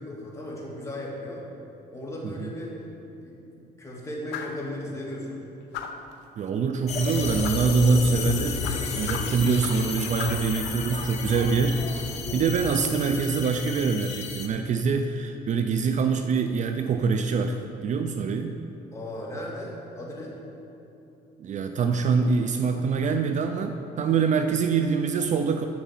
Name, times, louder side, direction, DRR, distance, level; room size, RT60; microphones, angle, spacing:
voice 1, 0.0-1.5 1.9-2.7 3.2-3.4 3.8-5.4 18.9-20.4, left 1 dB, 15° left, -4 dB, 2.2 m, -36 dB
sound 1, 4.3-4.6 5.7-6.1 7.4-7.7 8.6-9.9 10.2-10.5, left 8 dB, 85° left, 0.7 m, -36 dB
voice 2, 6.4-18.5 21.4-25.7, right 5 dB, 45° right, 7 dB, 0.5 m, -25 dB
sound 2, 6.9-14.5, left 4 dB, 40° left, 1.1 m, -32 dB
7.3 x 6.6 x 7.4 m, 2.8 s
cardioid pair, 110°, 17 cm